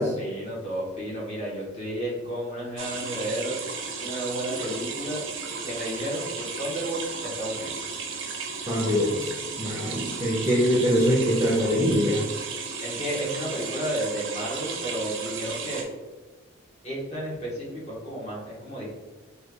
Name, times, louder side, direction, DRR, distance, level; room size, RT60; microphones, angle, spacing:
voice 1, 0.0-3.6 4.0-5.2 5.6-7.8 12.8-15.9 16.8-18.9, right 1 dB, 30° left, -6 dB, 1.0 m, -32 dB
sound 1, 2.8-15.8, right 5 dB, 75° right, 0.5 m, -34 dB
voice 2, 8.7-9.2 9.6-12.2, equal, 15° right, -5 dB, 0.6 m, -23 dB
3.2 x 2.3 x 3.3 m, 1.2 s
head